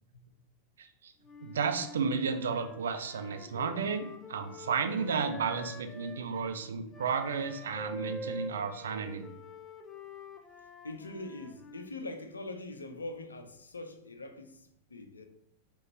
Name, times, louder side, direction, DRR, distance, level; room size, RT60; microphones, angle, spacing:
voice 1, 0.8-1.1 1.4-9.3, right 5 dB, 65° right, 0.5 m, -33 dB
Wind instrument woodwind instrument, 1.2-6.2 6.9-11.9, left 2 dB, 15° left, 0.6 m, -46 dB
voice 2, 10.8-15.3, left 2 dB, 75° left, 0.6 m, -43 dB
5.0 x 3.0 x 3.0 m
figure-of-eight pair, 90°, 0 cm